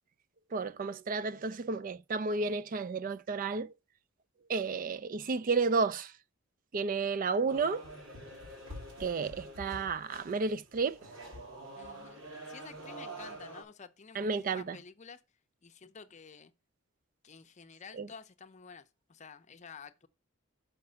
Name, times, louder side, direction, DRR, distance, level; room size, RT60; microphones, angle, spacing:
voice 1, 0.5-3.7 4.5-6.1 6.7-7.9 9.0-11.0 14.1-14.8 18.0-18.1, right 4 dB, 45° right, 0.4 m, -32 dB
sound 1, 7.5-13.6, right 1 dB, 90° right, 2.7 m, -46 dB
voice 2, 11.8-15.2 15.6-16.5 17.2-20.1, left 5 dB, 35° left, 0.6 m, -51 dB
5.8 x 5.3 x 6.7 m
head